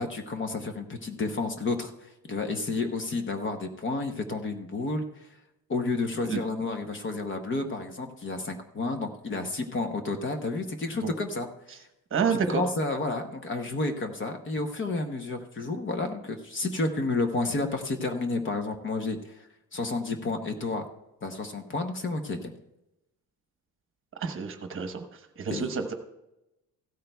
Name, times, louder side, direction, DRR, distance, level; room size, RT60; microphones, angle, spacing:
voice 1, 0.0-5.3 5.7-11.5 12.3-20.8 21.2-22.5 25.5-25.7, left 3 dB, 35° left, 6 dB, 0.8 m, -31 dB
voice 2, 12.1-12.6 24.2-25.0 25.4-25.9, right 6 dB, 35° right, 6 dB, 1.0 m, -28 dB
15.5 x 13.0 x 2.3 m, 0.93 s
cardioid pair, 160°, 37 cm